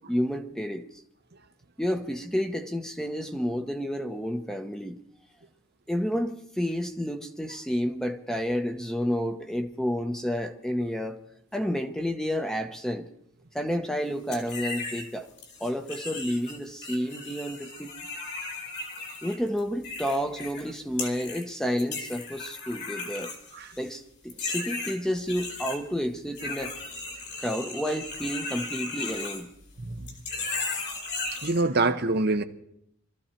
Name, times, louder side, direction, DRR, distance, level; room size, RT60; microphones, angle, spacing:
voice 1, 0.1-0.9 1.8-5.0 5.9-11.2 11.5-13.1 13.5-15.3 15.6-17.9 19.2-23.3 23.8-26.7 27.4-29.5, equal, 5° left, 0.9 m, -30 dB
sound 1, 14.3-15.1 15.4-20.6 21.0-21.5 21.8-23.9 24.3-25.8 26.3-29.8 30.1-31.6, left 3 dB, 60° left, 3.5 m, -36 dB
voice 2, 29.8-30.1 31.4-32.4, right 2 dB, 55° right, 1.0 m, -25 dB
23.5 x 13.5 x 4.5 m
head